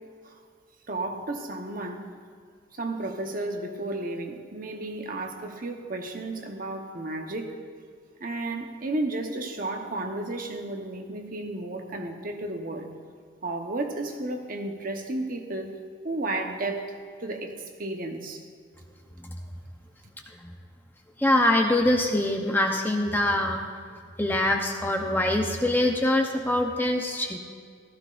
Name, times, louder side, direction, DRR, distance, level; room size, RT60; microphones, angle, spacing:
voice 1, 0.9-2.1 2.7-7.5 8.2-12.9 13.4-15.8 16.0-18.4, right 2 dB, 45° right, 3 dB, 1.0 m, -33 dB
voice 2, 21.2-23.6 24.2-27.4, left 1 dB, 10° left, 2 dB, 0.7 m, -24 dB
15.5 x 14.0 x 2.5 m, 2.1 s
head